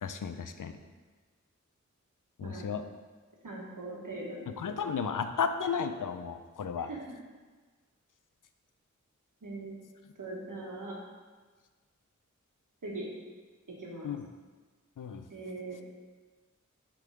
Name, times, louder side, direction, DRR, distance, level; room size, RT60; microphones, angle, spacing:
voice 1, 0.0-0.7 2.4-2.8 4.6-6.9 14.0-14.3 15.0-15.2, left 6 dB, 85° left, 9 dB, 0.5 m, -33 dB
voice 2, 3.4-4.5 6.8-7.2 9.4-9.7 10.2-10.9 12.8-13.1 13.8-14.1 15.3-15.8, right 2 dB, 80° right, -3 dB, 1.4 m, -40 dB
6.6 x 3.7 x 4.9 m, 1.4 s
wide cardioid pair, 60°, 31 cm